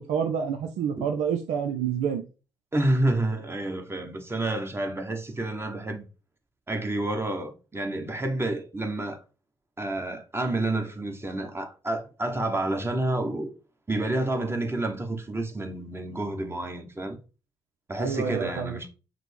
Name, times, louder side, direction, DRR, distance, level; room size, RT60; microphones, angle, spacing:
voice 1, 0.0-2.2 18.0-18.8, right 7 dB, 80° right, 0.4 m, -28 dB
voice 2, 2.7-6.1 6.7-9.2 9.8-13.5 13.9-17.2 17.9-18.9, right 2 dB, 20° right, 1.1 m, -29 dB
5.8 x 2.0 x 3.3 m
supercardioid pair, 50°, 11 cm